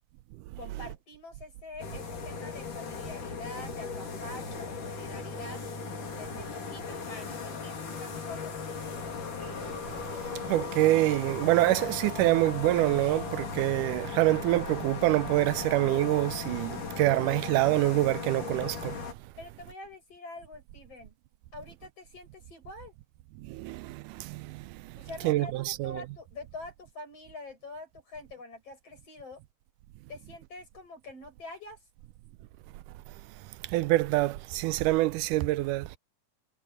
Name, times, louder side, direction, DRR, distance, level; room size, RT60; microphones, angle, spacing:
voice 1, 0.6-5.6 6.2-8.6 19.4-21.2 21.5-22.9 25.0-29.4 30.1-31.8, left 2 dB, 50° left, 8.8 m, -45 dB
sound 1, 1.8-19.1, left 5 dB, 75° left, 5.4 m, -37 dB
voice 2, 10.5-19.0 23.5-24.6 25.2-26.0 33.7-35.9, right 17 dB, 90° right, 2.2 m, -26 dB
omnidirectional pair, 3.6 m